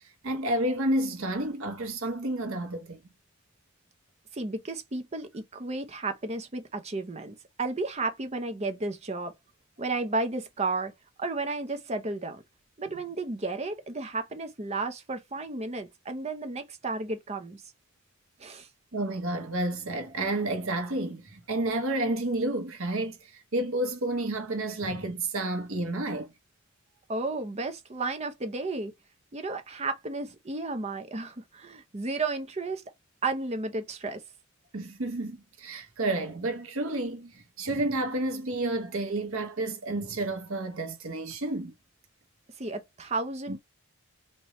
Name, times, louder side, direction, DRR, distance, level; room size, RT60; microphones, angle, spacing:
voice 1, 0.2-3.0 18.9-26.3 34.7-41.7 43.5-43.6, right 2 dB, 65° right, 0.9 m, -30 dB
voice 2, 4.3-9.3 9.8-10.9 11.2-12.4 12.8-17.6 18.4-18.7 27.1-28.9 29.3-32.8 33.2-34.2 42.6-43.6, right 3 dB, 30° right, 0.6 m, -33 dB
4.2 x 2.2 x 3.0 m
head